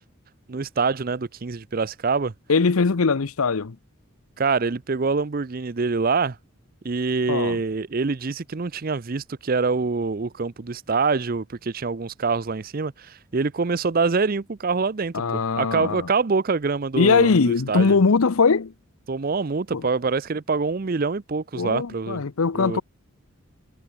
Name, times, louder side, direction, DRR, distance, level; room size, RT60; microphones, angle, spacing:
voice 1, 0.5-2.3 4.4-6.4 6.8-18.0 19.1-22.2 22.5-22.8, right 4 dB, 40° right, 0.5 m, -25 dB
voice 2, 2.5-3.8 7.3-7.6 15.1-16.1 17.0-18.7 19.7-19.8 21.5-22.8, left 4 dB, 80° left, 0.7 m, -21 dB
head